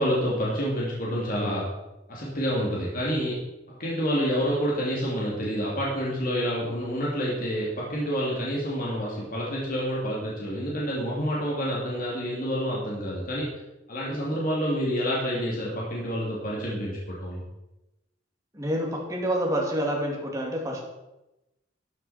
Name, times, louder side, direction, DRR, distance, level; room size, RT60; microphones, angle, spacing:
voice 1, 0.0-1.7 2.1-3.4 3.7-13.5 13.9-17.4, equal, 50° left, -5 dB, 2.8 m, -28 dB
voice 2, 18.5-20.8, equal, 15° right, -1 dB, 2.6 m, -28 dB
13.0 x 9.2 x 4.4 m, 0.96 s
head